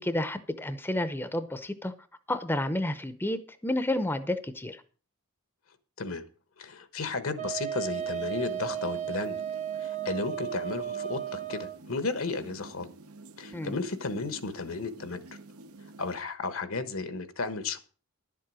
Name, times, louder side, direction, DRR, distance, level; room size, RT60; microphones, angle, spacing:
voice 1, 0.0-1.9 2.3-4.8 13.5-13.8, left 1 dB, 10° left, 0.7 m, -30 dB
voice 2, 6.6-9.4 9.8-12.9 13.4-15.2 16.0-17.8, left 3 dB, 70° left, 1.2 m, -34 dB
Wind instrument woodwind instrument, 7.4-11.8, right 10 dB, 35° right, 0.7 m, -34 dB
sound 1, 7.9-16.2, right 2 dB, 90° right, 1.0 m, -49 dB
11.0 x 7.5 x 6.3 m
head